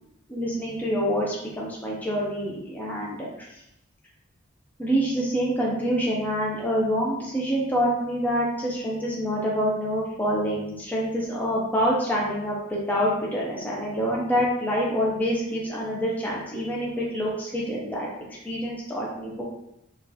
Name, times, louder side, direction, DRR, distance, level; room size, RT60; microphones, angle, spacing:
voice 1, 0.3-3.3 4.8-18.1 18.4-19.4, equal, 10° left, -5 dB, 0.5 m, -26 dB
3.8 x 2.4 x 2.7 m, 0.82 s
head